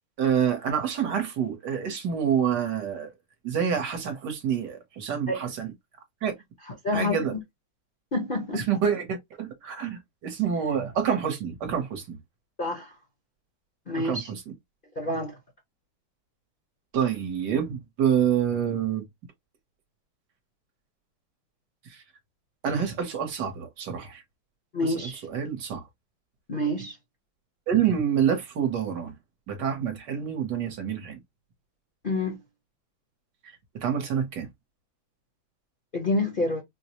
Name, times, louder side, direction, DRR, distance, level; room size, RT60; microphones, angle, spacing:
voice 1, 0.2-3.1 3.4-5.7 6.2-6.3 6.9-7.4 8.5-12.2 14.0-14.4 16.9-19.1 21.9-22.0 22.6-24.2 24.8-25.8 27.7-29.1 29.5-31.2 33.7-34.5, right 8 dB, 65° right, 1.4 m, -27 dB
voice 2, 6.8-7.2 8.1-8.6 12.6-12.9 13.9-14.3 15.0-15.3 24.7-25.2 26.5-26.9 32.0-32.4 35.9-36.6, left 2 dB, 40° left, 0.7 m, -27 dB
4.5 x 2.0 x 2.8 m
omnidirectional pair, 2.2 m